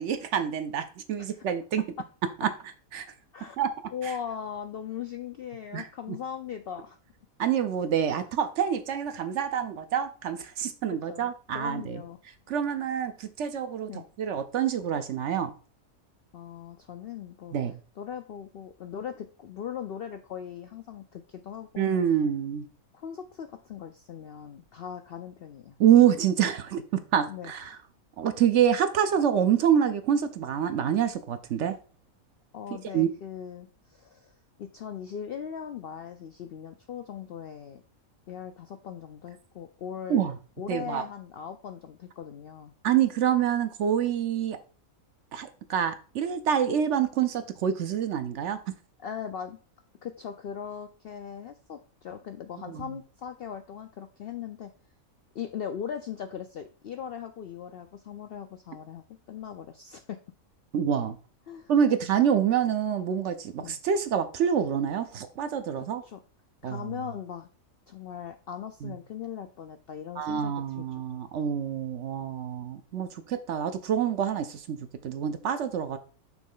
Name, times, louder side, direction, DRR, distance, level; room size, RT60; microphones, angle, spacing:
voice 1, 0.0-1.8 2.4-2.5 2.9-3.1 3.6-3.7 5.7-6.2 7.4-12.0 12.5-13.9 14.2-15.5 17.5-17.7 21.8-22.7 25.8-27.8 28.2-31.8 32.9-33.1 40.1-40.3 40.7-41.0 42.8-44.6 45.3-48.6 52.7-52.8 60.7-61.2 61.7-66.0 66.6-66.9 68.8-68.9 70.2-76.0, right 9 dB, 65° right, 0.9 m, -26 dB
voice 2, 3.9-7.0 10.9-12.2 13.9-14.1 16.3-17.6 18.0-21.9 22.9-25.8 27.3-27.8 32.5-37.8 38.3-40.2 40.6-42.7 49.0-49.6 50.0-54.7 55.3-60.2 61.5-61.7 63.6-63.8 65.7-66.2 66.6-67.5 67.9-71.0, left 8 dB, 70° left, 0.5 m, -39 dB
6.1 x 3.1 x 5.3 m
omnidirectional pair, 1.5 m